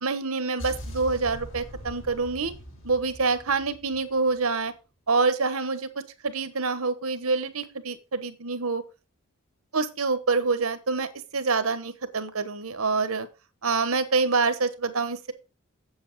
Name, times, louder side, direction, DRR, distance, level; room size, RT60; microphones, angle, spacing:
voice 1, 0.0-2.5 2.8-4.7 5.1-5.9 6.2-8.8 9.7-13.3 13.6-15.3, right 4 dB, 85° right, 12 dB, 1.2 m, -26 dB
sound 1, 0.6-4.7, equal, 60° left, 3.2 m, -41 dB
7.9 x 7.6 x 4.7 m, 0.31 s
head